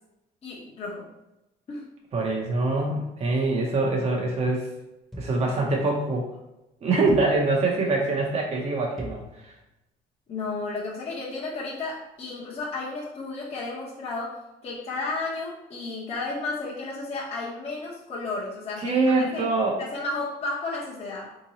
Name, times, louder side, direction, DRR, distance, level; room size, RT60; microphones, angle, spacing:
voice 1, 0.4-1.1 1.7-1.8 10.3-19.5 19.8-21.3, left 3 dB, 35° left, -5 dB, 0.8 m, -33 dB
voice 2, 2.1-4.7 5.2-6.2 6.8-9.5 18.8-19.8, right 3 dB, 40° right, -1 dB, 0.7 m, -24 dB
sound 1, 5.1-5.5 7.1-7.5 9.0-9.3, equal, ahead, 0.9 m, -41 dB
3.7 x 2.9 x 2.8 m, 0.93 s
cardioid pair, 110°, 17 cm